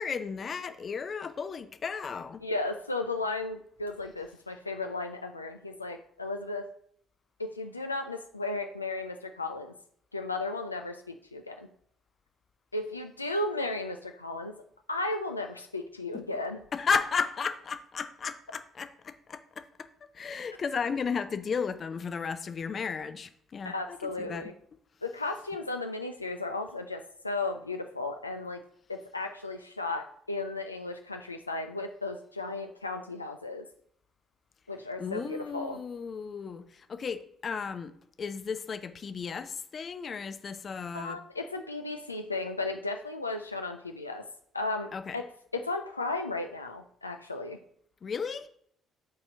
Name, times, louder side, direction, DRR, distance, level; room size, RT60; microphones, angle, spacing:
voice 1, 0.0-2.5 16.1-16.2 16.7-19.9 20.1-24.5 35.0-37.9 38.2-41.2 44.9-45.2 48.0-48.5, left 6 dB, 40° left, 11 dB, 0.6 m, -34 dB
voice 2, 2.4-6.7 7.4-9.7 10.1-11.7 12.7-14.5 14.9-16.6 23.7-24.5 25.0-28.6 28.9-33.6 34.7-35.8 40.9-44.2 44.5-45.3 45.5-47.6, left 2 dB, 90° left, 5 dB, 0.3 m, -35 dB
7.6 x 4.2 x 4.8 m, 0.65 s
figure-of-eight pair, 50°, 0 cm